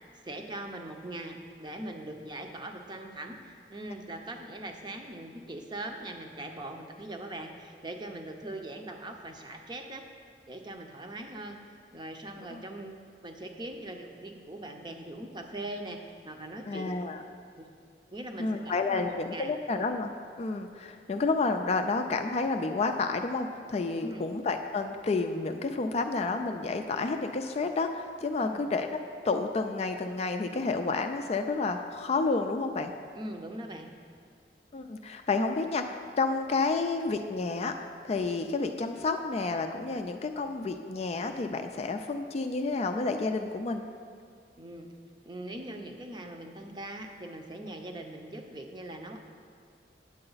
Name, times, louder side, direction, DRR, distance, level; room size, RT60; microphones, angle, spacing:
voice 1, 0.2-10.0 10.5-11.6 11.9-13.0 13.2-17.3 17.6-17.7 18.1-19.5 24.0-24.3 28.4-28.6 33.1-33.9 44.6-44.9 45.2-49.2, right 1 dB, 25° right, 4 dB, 0.7 m, -41 dB
voice 2, 16.7-17.2 18.4-20.1 20.4-28.9 29.2-32.9 34.7-37.8 38.1-43.9, left 3 dB, 35° left, 6 dB, 0.4 m, -30 dB
8.8 x 7.6 x 4.0 m, 2.1 s
head